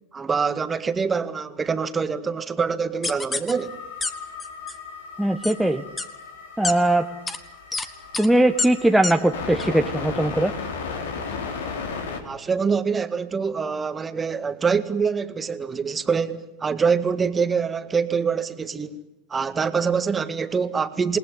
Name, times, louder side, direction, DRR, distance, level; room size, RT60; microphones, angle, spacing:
voice 1, 0.1-3.7 12.2-19.0 19.3-21.2, right 5 dB, 20° right, 1.8 m, -25 dB
sound 1, 3.0-3.5 4.0-4.1 4.4-4.7 5.4-5.5 6.0-6.1 6.6-6.7 7.3-7.4 7.7-7.9 8.1-8.3 8.6-8.7 9.0-9.1 9.6-9.7, left 3 dB, 15° left, 2.0 m, -27 dB
sound 2, 3.5-12.2, left 5 dB, 70° left, 3.9 m, -35 dB
voice 2, 5.2-5.8 6.6-7.1 8.2-10.5, right 1 dB, 5° right, 1.2 m, -20 dB
28.0 x 20.0 x 10.0 m
figure-of-eight pair, 90°, 0 cm